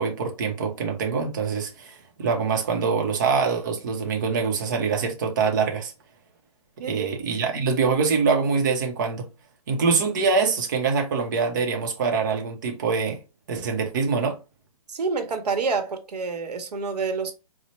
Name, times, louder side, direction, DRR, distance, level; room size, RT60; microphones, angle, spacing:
voice 1, 0.0-5.9 6.8-9.3 9.7-13.2 13.5-14.4, right 5 dB, 30° right, 0.6 m, -24 dB
voice 2, 14.9-17.3, right 4 dB, 85° right, 0.9 m, -28 dB
4.2 x 2.0 x 3.1 m
hypercardioid pair, 170°, 20 cm